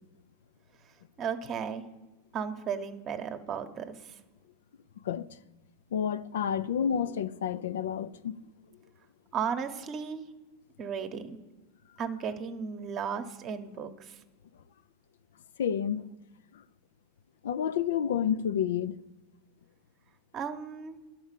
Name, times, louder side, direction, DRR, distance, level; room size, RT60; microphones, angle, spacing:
voice 1, 1.2-1.8 2.3-4.1 9.3-10.3 10.8-11.4 12.0-14.2 20.3-21.0, right 7 dB, 35° right, 0.9 m, -35 dB
voice 2, 5.9-8.4 15.6-16.1 16.5-16.6 17.4-19.0, left 8 dB, 85° left, 0.4 m, -30 dB
11.0 x 4.6 x 7.4 m
supercardioid pair, 125°, 0 cm